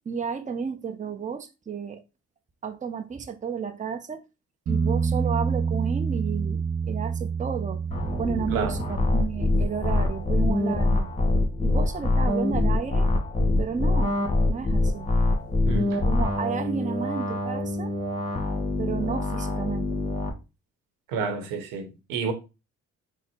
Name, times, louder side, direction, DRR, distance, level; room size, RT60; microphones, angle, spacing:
voice 1, 0.1-2.0 2.6-4.2 4.7-7.8 8.2-11.1 11.6-13.1 13.6-14.2 14.5-15.1 16.1-17.9 18.8-20.0, right 6 dB, 25° right, 0.6 m, -32 dB
sound 1, 4.7-12.3 15.3-15.4, right 5 dB, 45° right, 1.3 m, -29 dB
sound 2, 7.9-20.3, left 2 dB, 20° left, 1.3 m, -25 dB
voice 2, 15.6-16.0 21.1-22.3, right 4 dB, 85° right, 0.9 m, -29 dB
4.1 x 2.0 x 4.3 m
supercardioid pair, 65°, 32 cm